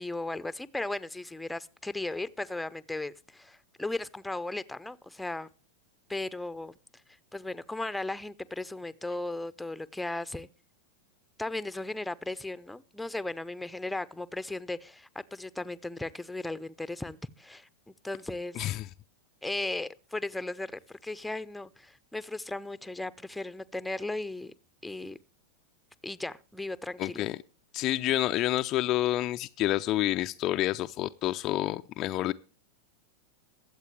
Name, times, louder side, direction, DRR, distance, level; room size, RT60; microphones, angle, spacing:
voice 1, 0.0-5.5 6.1-6.7 7.3-10.5 11.4-17.7 18.0-18.6 19.4-24.5 24.8-25.2 26.0-27.3, left 2 dB, 5° left, 0.7 m, -36 dB
voice 2, 18.6-18.9 27.0-27.4 27.7-32.3, left 15 dB, 35° left, 0.5 m, -28 dB
22.0 x 8.2 x 3.3 m
figure-of-eight pair, 90°, 0 cm